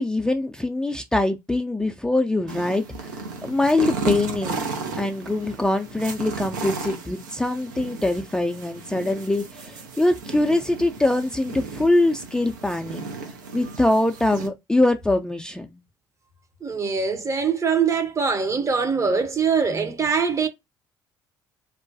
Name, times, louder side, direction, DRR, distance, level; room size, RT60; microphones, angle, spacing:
voice 1, 0.0-4.6 5.0-13.0 13.5-15.8, left 2 dB, 5° left, 0.3 m, -23 dB
sound 1, 2.5-14.5, right 4 dB, 90° right, 0.4 m, -34 dB
voice 2, 16.6-20.5, right 5 dB, 30° right, 0.6 m, -23 dB
2.3 x 2.1 x 2.4 m
hypercardioid pair, 55°, 10 cm